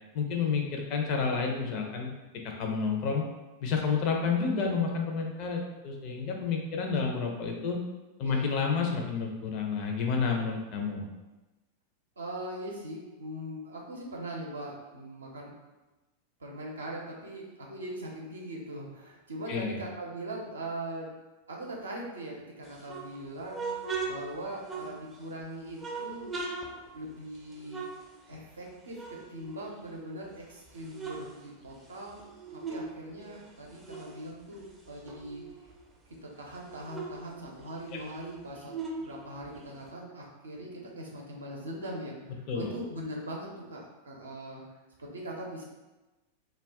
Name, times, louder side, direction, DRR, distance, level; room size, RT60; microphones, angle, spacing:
voice 1, 0.1-2.1 2.6-3.2 3.6-7.8 8.2-11.1 19.5-19.8 37.9-38.0 42.5-42.7, left 5 dB, 45° left, 1 dB, 0.5 m, -30 dB
voice 2, 12.2-15.5 16.4-21.1 21.5-26.4 26.9-27.8 28.3-32.2 32.5-35.4 36.2-44.6 45.0-45.6, right 1 dB, 75° right, -2 dB, 0.6 m, -41 dB
sound 1, 22.6-25.3 25.8-28.7 28.9-30.3 30.7-32.9 33.2-35.8 36.1-36.2 36.5-39.9, right 4 dB, 20° right, 0.4 m, -40 dB
2.3 x 2.2 x 3.4 m, 1.1 s
figure-of-eight pair, 90°, 0 cm